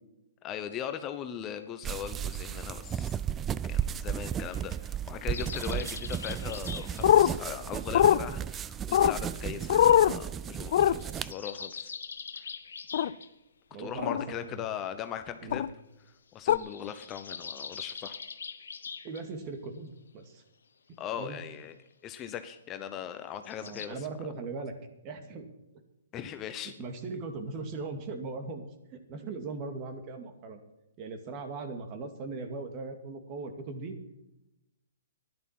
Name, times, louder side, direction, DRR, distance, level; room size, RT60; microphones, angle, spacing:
voice 1, 0.4-3.2 3.7-11.9 12.3-12.5 13.8-15.7 16.3-18.2 21.0-21.8 22.0-24.1 26.1-26.7, left 9 dB, 25° left, 9 dB, 0.9 m, -39 dB
sound 1, 1.8-11.3, right 9 dB, 20° right, 0.4 m, -34 dB
sound 2, 5.3-7.1 10.8-13.3 16.5-19.2 23.4-23.9, left 6 dB, 80° left, 1.2 m, -42 dB
sound 3, 7.0-7.3 7.9-8.2 8.9-9.2 9.7-10.1 10.7-10.9 12.9-13.1 14.0-14.2 15.5-15.7 16.5-16.6, left 11 dB, 55° left, 0.5 m, -21 dB
voice 2, 13.7-14.6 15.4-15.6 19.0-20.4 21.2-21.4 23.6-24.7 25.0-25.5 26.8-28.6 29.1-30.6 31.0-34.0, right 3 dB, 35° right, 6 dB, 2.3 m, -39 dB
12.5 x 11.0 x 5.9 m, 0.93 s
hypercardioid pair, 130°, 0 cm